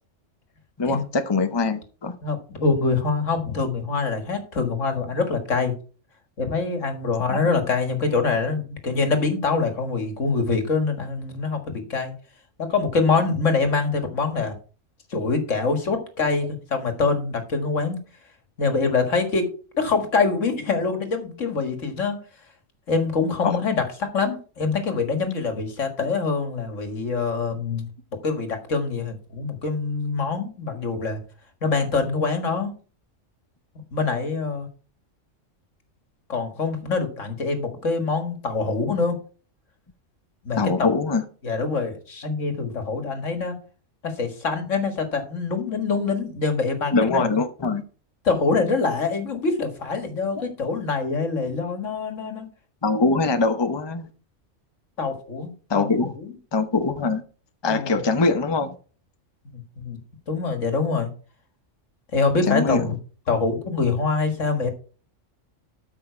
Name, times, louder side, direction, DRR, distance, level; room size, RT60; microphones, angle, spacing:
voice 1, 0.8-2.2 7.3-7.4 23.4-23.6 40.6-41.2 46.9-47.8 52.8-54.1 55.7-56.1 56.5-57.2 57.6-58.7 62.5-62.9, left 3 dB, 25° left, 0.9 m, -23 dB
voice 2, 2.2-5.8 6.4-12.1 12.6-14.6 15.1-18.0 18.6-19.5 19.8-22.2 22.9-27.9 28.2-31.2 31.6-32.7 33.9-34.7 36.3-39.2 40.4-41.0 41.4-43.6 44.0-47.4 48.2-52.5 55.0-56.3 57.7-58.0 59.5-60.0 60.3-61.1 62.1-63.0 63.3-64.7, left 4 dB, 75° left, 2.1 m, -25 dB
13.0 x 5.8 x 4.6 m
omnidirectional pair, 1.3 m